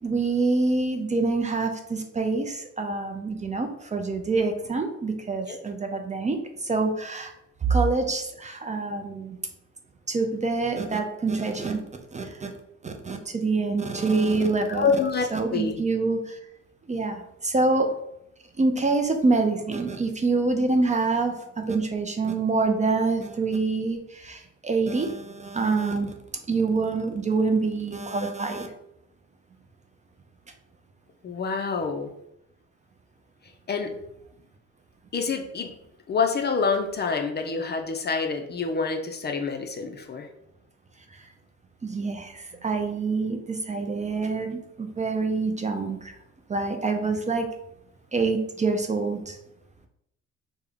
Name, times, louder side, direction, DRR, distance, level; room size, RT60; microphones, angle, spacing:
voice 1, 0.0-7.3 7.6-9.4 10.1-11.8 12.1-12.5 12.8-15.0 15.3-16.4 16.9-17.9 18.6-26.1 26.5-28.7 41.1-41.2 41.8-46.2 46.5-47.5 48.1-49.4, right 3 dB, 25° right, 5 dB, 0.4 m, -26 dB
voice 2, 14.7-15.3 15.5-15.8 31.2-32.1 33.7-33.9 35.1-35.7 36.1-40.3, left 5 dB, 35° left, 5 dB, 0.4 m, -27 dB
3.5 x 2.2 x 3.4 m, 0.79 s
cardioid pair, 90°, 30 cm